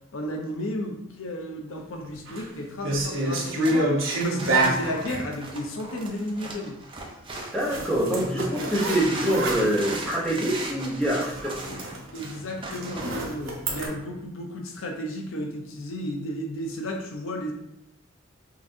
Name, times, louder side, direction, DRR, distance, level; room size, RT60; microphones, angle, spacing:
voice 1, 0.1-3.9 4.2-6.8 11.7-11.8 12.1-17.5, left 1 dB, 70° left, 2 dB, 0.6 m, -33 dB
sound 1, 2.0-2.4 2.8-5.3 7.6-10.2 10.6-10.7 11.0-13.9, right 2 dB, 65° right, 0.9 m, -28 dB
sound 2, 3.3-7.8 8.2-13.2, right 2 dB, 25° right, 0.5 m, -38 dB
voice 2, 7.5-11.5, right 1 dB, 5° left, -6 dB, 0.9 m, -25 dB
5.7 x 2.5 x 2.6 m, 0.81 s
head